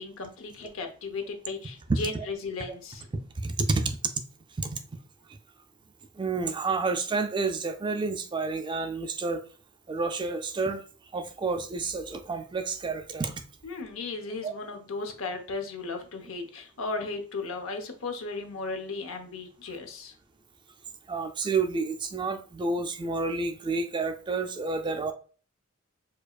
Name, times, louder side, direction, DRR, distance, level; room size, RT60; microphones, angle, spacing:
voice 1, 0.0-3.1 13.6-20.1, left 3 dB, 75° left, 0.7 m, -36 dB
voice 2, 1.9-2.3 3.4-4.0 4.6-4.8 6.2-9.4 9.9-10.8 11.1-13.3 14.4-14.5 21.1-25.1, right 3 dB, 20° right, 0.3 m, -29 dB
4.6 x 2.4 x 2.3 m
head